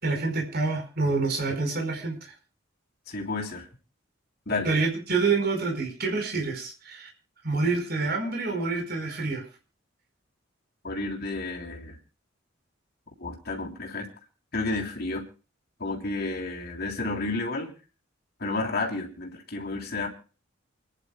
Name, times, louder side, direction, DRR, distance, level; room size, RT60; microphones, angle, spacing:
voice 1, 0.0-2.3 4.6-7.1 7.4-9.4, right 3 dB, 55° right, 2 dB, 4.8 m, -27 dB
voice 2, 3.1-3.7 4.4-4.7 10.8-12.0 13.2-14.1 14.5-15.2 15.8-17.7 18.4-20.1, left 3 dB, 55° left, 1 dB, 3.5 m, -31 dB
29.0 x 11.0 x 2.3 m, 0.36 s
head